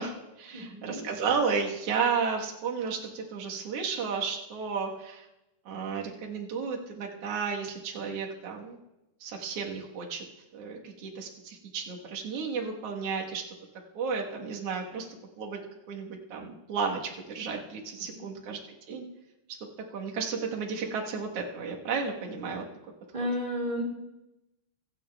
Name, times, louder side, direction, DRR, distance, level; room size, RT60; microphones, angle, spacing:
voice 1, 0.0-5.3 5.7-8.8 9.2-10.2 10.5-13.4 13.9-15.1 15.4-15.6 15.9-18.6 18.9-19.1 19.5-19.6 19.9-22.7, right 5 dB, 55° right, 0 dB, 2.0 m, -33 dB
voice 2, 0.5-1.1 18.3-18.4 23.1-23.8, equal, 20° right, -1 dB, 1.4 m, -32 dB
24.5 x 8.8 x 2.3 m, 0.94 s
omnidirectional pair, 4.0 m